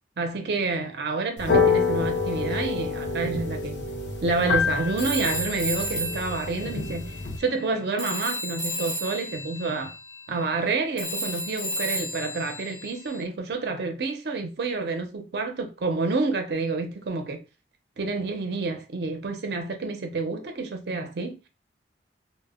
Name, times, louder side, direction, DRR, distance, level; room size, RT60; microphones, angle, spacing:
voice 1, 0.2-3.8 4.2-7.1 7.4-9.9 10.3-17.4 18.0-21.4, right 3 dB, 60° right, 0.5 m, -28 dB
sound 1, 1.4-7.4, left 4 dB, 80° left, 0.5 m, -27 dB
Telephone, 5.0-7.7 8.0-13.2, equal, 25° left, 0.5 m, -33 dB
2.1 x 2.0 x 3.4 m
head